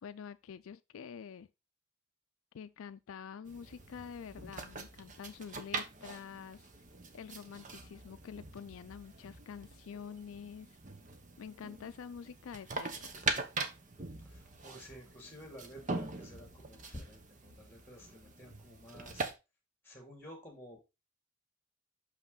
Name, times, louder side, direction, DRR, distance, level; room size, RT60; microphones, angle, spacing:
voice 1, 0.0-1.5 2.5-6.7 7.1-10.8 11.4-13.3, left 7 dB, 80° left, 0.4 m, -47 dB
sound 1, 3.5-19.3, right 3 dB, 35° right, 1.0 m, -42 dB
voice 2, 14.2-19.3 19.8-20.8, equal, 10° left, 2.7 m, -51 dB
6.3 x 5.8 x 3.9 m
head